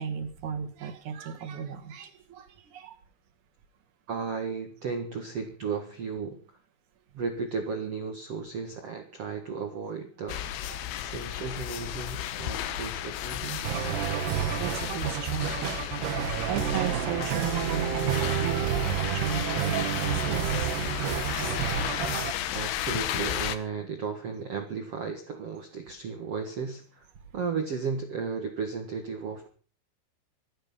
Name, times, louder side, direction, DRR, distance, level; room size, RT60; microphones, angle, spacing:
voice 1, 0.0-3.0 10.7-10.9 12.6-12.7 13.8-15.8 16.5-21.6, right 7 dB, 55° right, 7 dB, 2.5 m, -36 dB
voice 2, 4.1-6.4 7.1-10.5 10.9-13.7 22.5-27.0 27.3-29.5, right 5 dB, 85° right, 5 dB, 1.3 m, -34 dB
sound 1, 10.3-23.6, left 11 dB, 85° left, 3.7 m, -33 dB
sound 2, 13.6-22.3, right 10 dB, 70° right, 3.0 m, -30 dB
25.0 x 9.1 x 5.6 m, 0.38 s
omnidirectional pair, 5.6 m